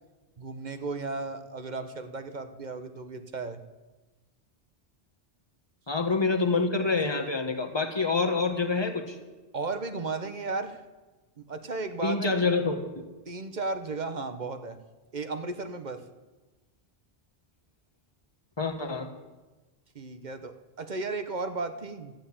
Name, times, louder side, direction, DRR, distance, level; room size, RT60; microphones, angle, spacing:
voice 1, 0.4-3.6 9.5-10.8 11.4-12.2 13.3-14.8 15.1-16.0 19.9-22.1, right 3 dB, 45° right, 9 dB, 1.0 m, -34 dB
voice 2, 5.9-9.2 12.0-12.8 18.6-19.1, left 4 dB, 25° left, 5 dB, 1.4 m, -26 dB
13.0 x 8.9 x 8.7 m, 1.2 s
omnidirectional pair, 1.1 m